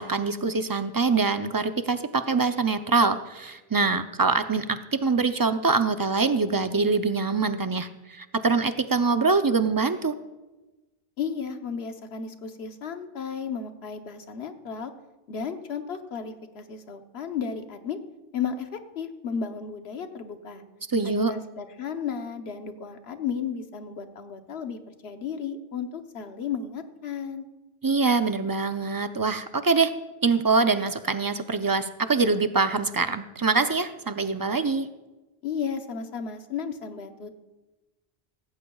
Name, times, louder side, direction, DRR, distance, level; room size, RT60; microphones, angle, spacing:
voice 1, 0.0-10.1 20.9-21.3 27.8-29.9 30.2-34.9, right 4 dB, 35° right, 9 dB, 0.4 m, -24 dB
voice 2, 11.2-14.9 15.3-18.0 18.3-20.6 21.2-27.4 35.4-37.3, left 6 dB, 80° left, 7 dB, 1.2 m, -34 dB
17.0 x 15.5 x 2.3 m, 1.1 s
omnidirectional pair, 1.0 m